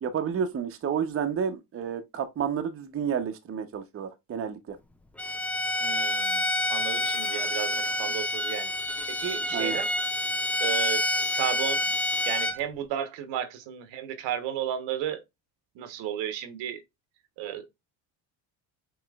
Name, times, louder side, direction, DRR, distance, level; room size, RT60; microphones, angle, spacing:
voice 1, 0.0-4.8 9.5-9.8, right 7 dB, 30° right, 0.7 m, -30 dB
Bowed string instrument, 5.2-12.6, left 1 dB, 5° left, 0.3 m, -28 dB
voice 2, 5.8-8.7 9.1-9.9 10.6-11.0 11.3-11.8 12.3-15.2 15.7-16.8 17.4-17.7, right 10 dB, 80° right, 1.0 m, -33 dB
4.9 x 3.0 x 2.2 m
cardioid pair, 100°, 43 cm